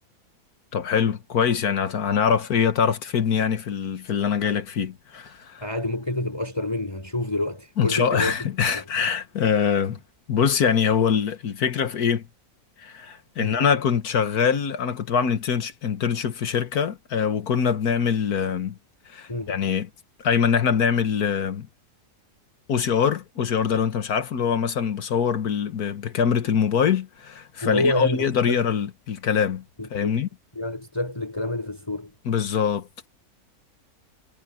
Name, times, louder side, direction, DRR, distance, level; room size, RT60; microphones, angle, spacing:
voice 1, 0.7-5.6 7.8-10.0 10.3-12.2 12.8-18.8 19.1-19.9 20.2-21.7 22.7-29.6 29.9-30.3 32.3-32.9, left 7 dB, 80° left, 1.8 m, -23 dB
voice 2, 5.6-8.3 8.7-8.8 13.4-13.6 19.3-19.6 27.6-28.6 29.8-30.2 30.5-32.1, left 1 dB, 15° left, 5.6 m, -28 dB
omnidirectional pair, 1.6 m